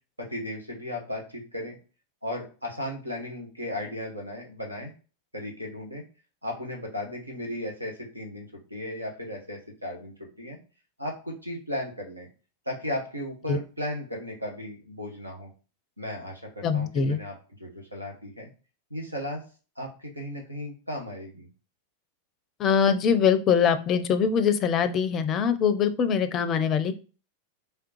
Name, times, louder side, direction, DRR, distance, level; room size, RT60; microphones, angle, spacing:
voice 1, 0.2-1.8 2.2-4.9 5.3-6.0 6.4-10.6 11.0-12.3 12.7-15.5 16.0-18.5 18.9-19.4 19.8-21.5, left 1 dB, 85° right, 0 dB, 1.0 m, -35 dB
voice 2, 16.6-17.2 22.6-26.9, left 7 dB, 30° left, 11 dB, 0.5 m, -23 dB
3.6 x 3.3 x 2.9 m, 0.35 s
figure-of-eight pair, 90°, 0 cm